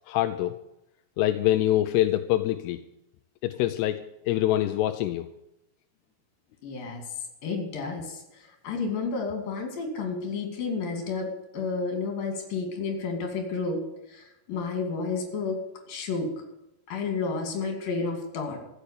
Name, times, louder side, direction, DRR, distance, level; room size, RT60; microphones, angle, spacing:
voice 1, 0.1-0.5 1.2-2.8 3.4-5.3, left 14 dB, 80° left, 8 dB, 2.5 m, -25 dB
voice 2, 6.6-7.0 7.4-13.8 14.1-15.6 15.9-16.3 16.9-18.6, left 4 dB, 55° left, 3 dB, 4.3 m, -31 dB
14.5 x 8.4 x 8.4 m, 0.87 s
omnidirectional pair, 5.1 m